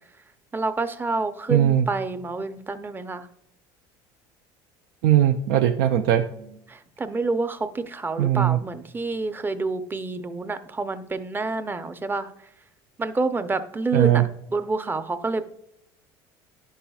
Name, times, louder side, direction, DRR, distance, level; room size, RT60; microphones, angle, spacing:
voice 1, 0.5-3.3 6.3-12.3 13.0-14.2 14.5-15.4, right 3 dB, 20° right, 10 dB, 0.5 m, -28 dB
voice 2, 1.5-1.9 5.0-6.3 8.2-8.6 13.9-14.2, right 11 dB, 85° right, 5 dB, 0.4 m, -19 dB
10.5 x 5.5 x 2.3 m, 0.77 s
supercardioid pair, 95°, 11 cm